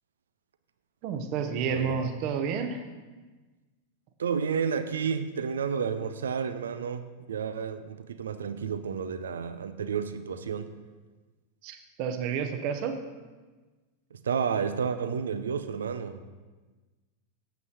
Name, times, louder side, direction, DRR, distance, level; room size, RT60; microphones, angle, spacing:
voice 1, 1.0-2.8 11.6-13.0, right 6 dB, 40° right, 7 dB, 1.0 m, -30 dB
voice 2, 1.7-2.0 4.2-10.7 14.1-16.2, right 6 dB, 65° right, 11 dB, 0.6 m, -31 dB
7.9 x 5.9 x 6.9 m, 1.3 s
figure-of-eight pair, 90°, 0 cm